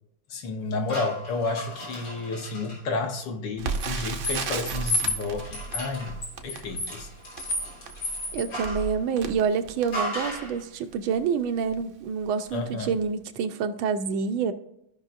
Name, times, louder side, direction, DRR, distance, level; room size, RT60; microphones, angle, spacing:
voice 1, 0.3-7.1 12.5-12.9, left 3 dB, 65° left, 4 dB, 1.6 m, -31 dB
sound 1, 0.9-2.8 3.7-8.9 9.9-10.5, left 1 dB, 90° left, 4.0 m, -32 dB
Crackle, 3.6-10.5 11.2-11.3 11.6-11.8 12.4-12.6 12.9-13.0, right 5 dB, 65° right, 0.7 m, -35 dB
voice 2, 8.3-14.5, right 6 dB, 90° right, 8 dB, 1.5 m, -27 dB
14.5 x 5.5 x 2.5 m, 0.79 s
omnidirectional pair, 2.2 m